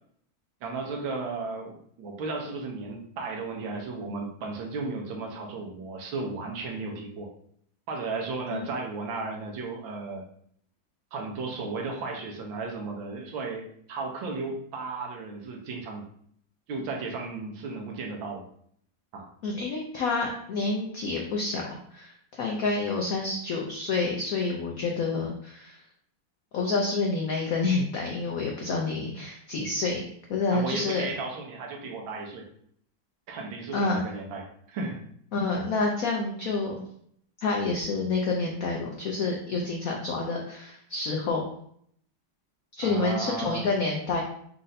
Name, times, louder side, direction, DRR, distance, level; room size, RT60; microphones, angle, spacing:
voice 1, 0.6-7.3 7.9-10.2 11.1-16.1 16.7-18.4 19.1-19.3 30.5-32.4 33.3-35.0 42.8-43.7, right 3 dB, 75° right, 2 dB, 1.4 m, -34 dB
voice 2, 19.4-21.6 21.9-25.8 26.5-30.0 30.3-31.0 33.7-34.0 35.3-36.8 37.4-41.4 42.8-44.2, left 3 dB, 85° left, 0 dB, 0.7 m, -28 dB
4.3 x 2.5 x 3.9 m, 0.65 s
omnidirectional pair, 2.2 m